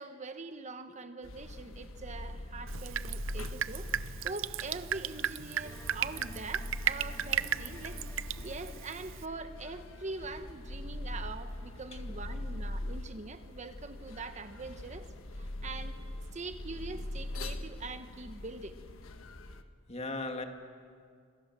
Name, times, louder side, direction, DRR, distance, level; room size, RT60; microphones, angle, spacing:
voice 1, 0.0-3.9 4.2-8.0 8.4-15.1 15.3-16.0 16.3-18.8, right 3 dB, 35° right, 9 dB, 1.1 m, -43 dB
sound 1, 1.2-19.6, left 1 dB, 80° left, 1.5 m, -42 dB
Drip, 2.7-9.3, right 9 dB, 70° right, 0.6 m, -36 dB
sound 2, 5.6-12.6, left 2 dB, 15° left, 1.9 m, -56 dB
voice 2, 11.9-12.4 12.8-12.9 19.9-20.4, left 2 dB, 30° left, 5 dB, 2.3 m, -40 dB
28.5 x 27.0 x 7.5 m, 2.2 s
head